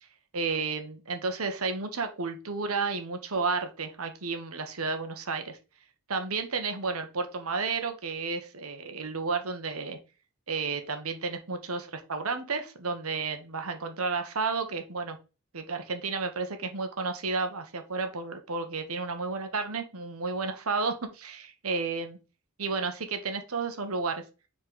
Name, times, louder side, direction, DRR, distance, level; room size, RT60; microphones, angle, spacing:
voice 1, 0.3-5.6 6.1-10.0 10.5-15.2 15.5-22.2 22.6-24.2, right 4 dB, 80° right, 7 dB, 1.3 m, -32 dB
5.0 x 4.3 x 5.3 m, 0.31 s
head